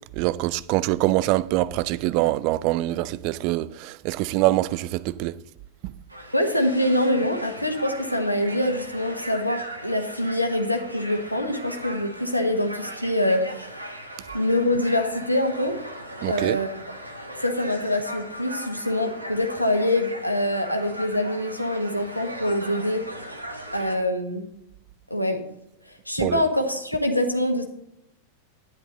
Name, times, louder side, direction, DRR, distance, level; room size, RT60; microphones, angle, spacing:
voice 1, 0.2-5.3 5.8-5.9 16.2-16.6 26.2-26.4, right 17 dB, 45° right, 0.4 m, -24 dB
sound 1, 6.1-24.0, right 1 dB, 85° right, 1.4 m, -38 dB
voice 2, 6.3-14.0 14.3-15.7 16.3-16.7 17.4-23.0 23.7-24.4 25.1-25.4 26.1-27.6, left 1 dB, 90° left, 1.4 m, -25 dB
11.0 x 9.9 x 4.0 m
figure-of-eight pair, 90°, 0 cm